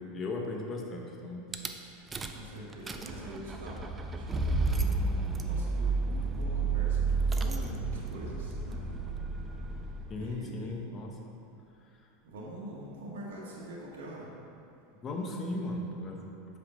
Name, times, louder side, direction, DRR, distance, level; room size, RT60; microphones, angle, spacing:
voice 1, 0.0-1.5 10.1-11.1 15.0-16.6, left 2 dB, 25° left, 1 dB, 0.9 m, -37 dB
Rattle / Car / Engine starting, 1.5-1.7 2.1-2.5 2.7-10.5, right 3 dB, 15° right, 0.4 m, -31 dB
voice 2, 2.3-4.8 5.4-8.8 10.1-10.8 12.2-14.3, right 1 dB, 85° right, -5 dB, 1.6 m, -44 dB
5.6 x 5.0 x 6.3 m, 2.7 s
supercardioid pair, 140°, 0 cm